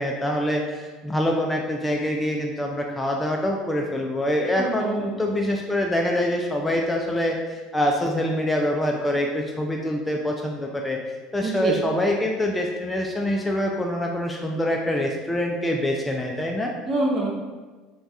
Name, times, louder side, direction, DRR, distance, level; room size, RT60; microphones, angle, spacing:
voice 1, 0.0-16.7, left 1 dB, 15° left, 0 dB, 0.3 m, -25 dB
voice 2, 4.6-5.2 11.4-11.7 16.9-17.3, right 2 dB, 40° right, -3 dB, 0.8 m, -26 dB
3.2 x 2.2 x 2.6 m, 1.3 s
hypercardioid pair, 80°, 0 cm